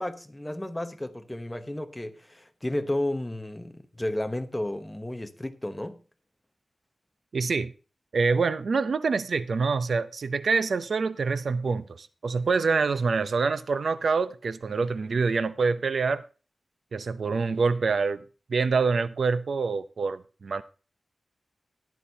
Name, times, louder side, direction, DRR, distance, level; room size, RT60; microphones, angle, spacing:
voice 1, 0.0-6.0, left 1 dB, 10° left, 0.9 m, -32 dB
voice 2, 7.3-7.7 8.1-16.2 16.9-18.2 18.5-20.6, right 4 dB, 70° right, 0.6 m, -26 dB
14.0 x 11.0 x 2.8 m
wide cardioid pair, 130°, 0 cm